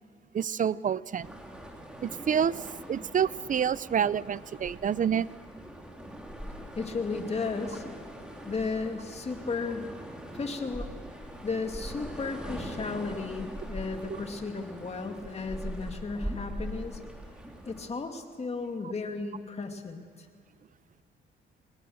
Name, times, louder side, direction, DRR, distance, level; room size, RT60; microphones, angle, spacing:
voice 1, 0.3-1.3 2.0-2.5 2.9-5.3, right 8 dB, 40° right, 19 dB, 0.6 m, -27 dB
sound 1, 1.2-17.9, equal, 5° right, 3.5 m, -42 dB
voice 2, 6.8-7.8 8.4-9.9 10.3-10.9 11.4-17.0 17.7-20.3, left 4 dB, 30° left, 5 dB, 2.4 m, -34 dB
24.0 x 20.0 x 6.5 m, 2.2 s
cardioid pair, 90°, 20 cm